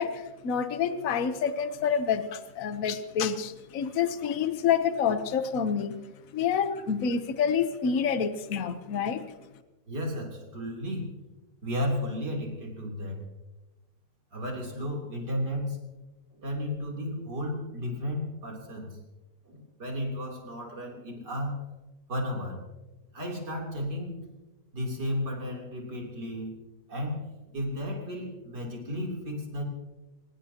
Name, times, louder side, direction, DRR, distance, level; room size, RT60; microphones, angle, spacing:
voice 1, 0.0-6.0 6.3-9.3, left 7 dB, 55° left, 10 dB, 1.3 m, -28 dB
voice 2, 9.9-11.1 11.6-13.3 14.3-15.8 16.3-19.0 19.4-21.6 22.1-22.6 23.1-24.2 24.7-26.6 26.9-27.3 27.5-29.6, left 1 dB, 70° right, 0 dB, 4.0 m, -33 dB
24.0 x 20.0 x 2.9 m, 1.1 s
omnidirectional pair, 1.9 m